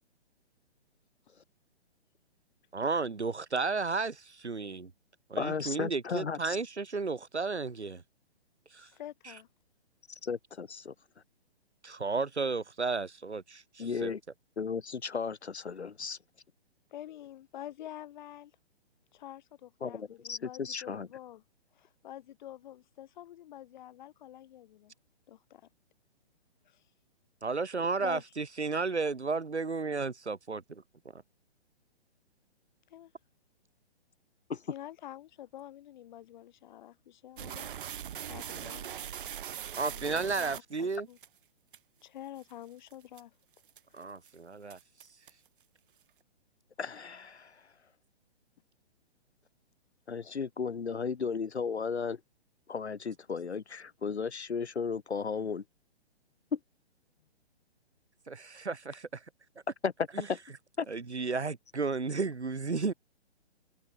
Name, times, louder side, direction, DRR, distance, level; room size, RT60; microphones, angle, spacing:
voice 1, 2.7-4.9 5.3-8.0 8.7-8.9 9.2-9.3 11.8-14.1 27.4-30.8 31.1-31.2 39.8-41.1 43.9-44.8 58.3-59.1 60.1-60.3 60.9-62.9, right 4 dB, 90° right, 1.4 m, -33 dB
voice 2, 5.4-6.6 10.1-10.9 13.8-14.2 14.6-16.2 19.8-21.1 34.5-34.6 46.8-47.6 50.1-52.2 52.7-55.6 56.5-56.6 59.8-59.9 60.3-60.4 60.8-60.9, left 5 dB, 80° left, 1.3 m, -35 dB
voice 3, 8.8-9.5 16.9-18.5 19.1-21.4 21.7-24.9 25.3-25.7 26.6-26.8 28.0-28.2 32.9-33.1 34.7-38.9 39.9-41.2 42.0-43.3 43.9-44.1, left 12 dB, 45° left, 6.3 m, -47 dB
sound 1, 37.4-41.3 41.7-41.8 42.4-42.5 42.9-43.2 43.7-44.0 44.2-44.3 44.7-45.5, right 10 dB, 50° right, 2.3 m, -41 dB
figure-of-eight pair, 130°, 33 cm